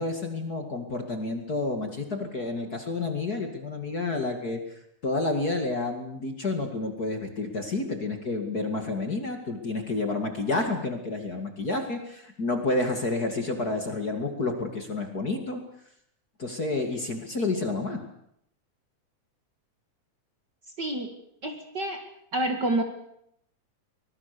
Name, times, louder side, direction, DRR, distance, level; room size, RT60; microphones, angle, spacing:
voice 1, 0.0-4.6 5.0-15.6 16.4-18.0, left 2 dB, 35° left, 4 dB, 2.4 m, -30 dB
voice 2, 20.8-21.1 21.4-22.0 22.3-22.8, right 1 dB, 40° right, 5 dB, 2.3 m, -28 dB
24.5 x 21.0 x 6.9 m, 0.74 s
omnidirectional pair, 3.5 m